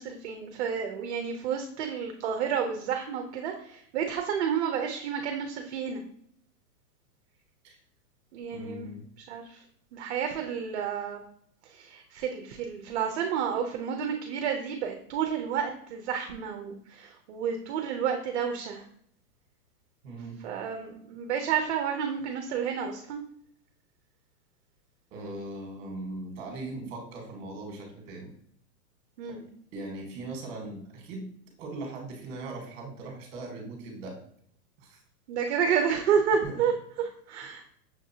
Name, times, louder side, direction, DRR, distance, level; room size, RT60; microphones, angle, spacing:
voice 1, 0.0-6.0 8.3-8.9 9.3-9.6 9.9-11.2 11.7-18.8 20.4-23.3 29.2-29.5 35.3-36.7 37.0-37.6, right 7 dB, 45° right, 4 dB, 0.5 m, -30 dB
voice 2, 8.5-9.0 20.0-20.3 25.1-28.3 29.3-29.4 29.7-31.3 31.6-34.2 34.8-35.0 36.4-36.5, right 2 dB, 25° right, 1 dB, 1.4 m, -39 dB
6.5 x 2.5 x 2.7 m, 0.66 s
hypercardioid pair, 150°, 48 cm